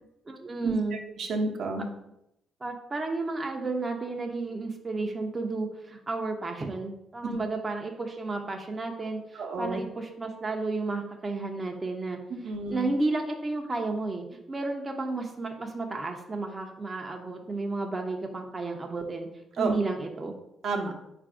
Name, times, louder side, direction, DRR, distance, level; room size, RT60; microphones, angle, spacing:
voice 1, 0.3-1.0 2.6-12.2 12.7-19.3 19.6-20.4, right 3 dB, 25° right, 3 dB, 0.5 m, -32 dB
voice 2, 1.2-1.9 9.4-9.8 12.4-12.9 19.6-19.8 20.6-20.9, right 3 dB, 65° right, 1 dB, 0.7 m, -30 dB
4.0 x 2.5 x 4.6 m, 0.83 s
cardioid pair, 90°, 0 cm